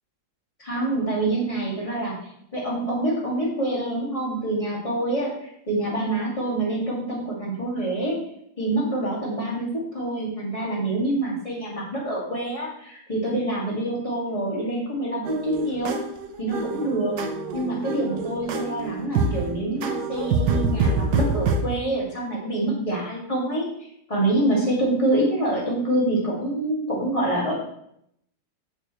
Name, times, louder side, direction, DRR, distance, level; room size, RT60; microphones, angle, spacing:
voice 1, 0.6-8.2 8.6-16.0 16.4-17.2 17.5-23.7 24.1-27.5, right 1 dB, 20° left, -4 dB, 2.2 m, -26 dB
sound 1, 15.2-21.6, right 3 dB, 70° right, 1.4 m, -26 dB
8.0 x 6.7 x 3.1 m, 0.73 s
omnidirectional pair, 1.9 m